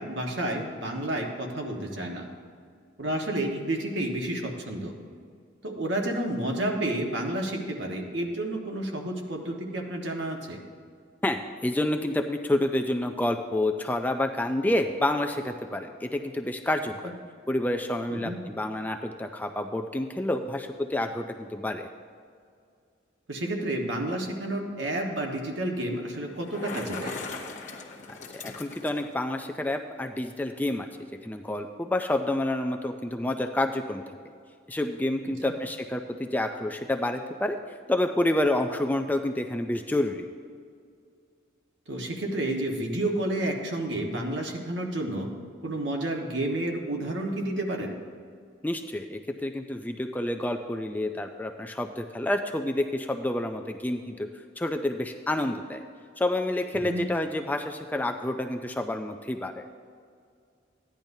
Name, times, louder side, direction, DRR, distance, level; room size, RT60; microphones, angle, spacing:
voice 1, 0.0-2.2 3.0-4.9 5.6-10.6 18.1-18.4 23.3-27.1 35.4-35.5 41.9-45.3 45.6-47.9 56.9-57.0, right 1 dB, 70° right, 1 dB, 1.3 m, -30 dB
voice 2, 11.2-17.1 17.5-21.9 28.1-30.9 31.2-34.0 34.7-37.6 37.9-40.3 48.6-54.3 54.6-55.8 56.2-59.7, left 1 dB, 10° left, 5 dB, 0.3 m, -29 dB
Bicycle, 26.3-29.2, left 3 dB, 40° left, 0.9 m, -39 dB
15.0 x 10.5 x 2.7 m, 2.2 s
head